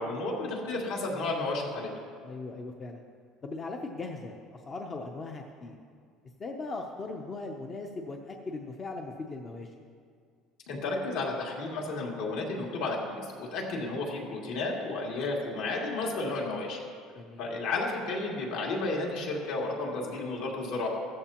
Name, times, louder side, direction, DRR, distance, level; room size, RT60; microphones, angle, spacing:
voice 1, 0.0-1.9 10.7-16.8 17.4-20.9, left 2 dB, 65° left, -2 dB, 2.6 m, -32 dB
voice 2, 2.2-3.0 3.4-5.8 6.4-9.7 17.2-17.4, left 3 dB, 20° left, 3 dB, 0.6 m, -39 dB
15.0 x 14.0 x 2.9 m, 2.1 s
cardioid pair, 180°, 0 cm